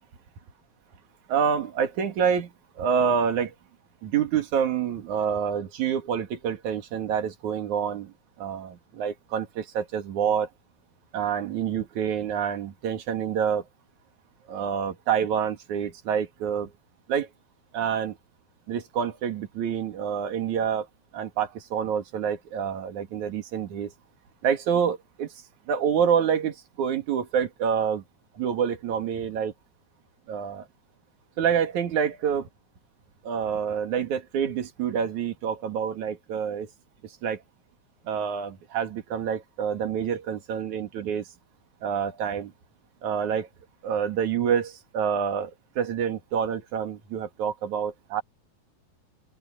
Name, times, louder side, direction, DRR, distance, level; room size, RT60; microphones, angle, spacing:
voice 1, 1.3-3.5 4.0-8.1 8.4-10.5 11.1-13.7 14.5-16.7 17.1-17.3 17.7-18.2 18.7-20.9 21.1-23.9 24.4-25.3 25.7-28.0 28.3-29.5 30.3-30.6 31.4-32.5 33.2-36.7 37.2-37.4 38.0-41.2 41.8-42.5 43.0-43.5 43.8-45.5 45.7-48.2, right 7 dB, 60° right, 3.4 m, -27 dB
open air
omnidirectional pair, 3.9 m